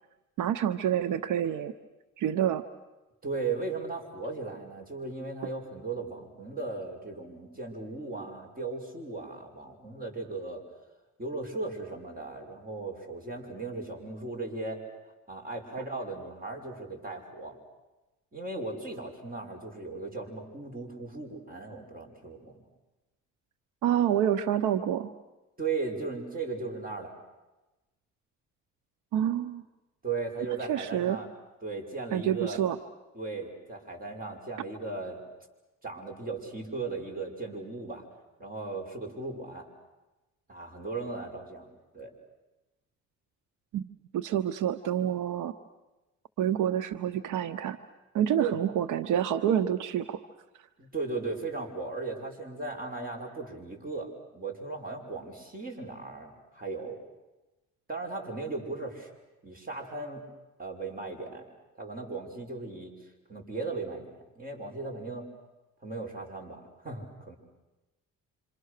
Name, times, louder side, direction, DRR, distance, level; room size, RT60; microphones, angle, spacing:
voice 1, 0.4-1.7 2.2-2.6 23.8-25.1 29.1-29.6 30.7-31.2 32.1-32.8 43.7-43.9 44.1-45.5 46.4-47.8 48.1-50.2, right 10 dB, 80° right, 10 dB, 0.9 m, -27 dB
voice 2, 3.2-10.6 11.2-14.8 15.3-17.6 18.3-22.6 25.6-27.1 30.0-31.3 31.6-32.6 33.1-35.2 35.8-38.1 38.4-39.7 40.5-41.7 41.9-42.1 48.4-48.6 50.8-57.0 57.9-59.1 59.4-60.2 60.6-61.4 61.8-62.9 63.3-65.3 65.8-67.4, right 3 dB, 30° right, 2 dB, 6.0 m, -37 dB
27.5 x 26.5 x 6.7 m, 1.1 s
cardioid pair, 90°, 30 cm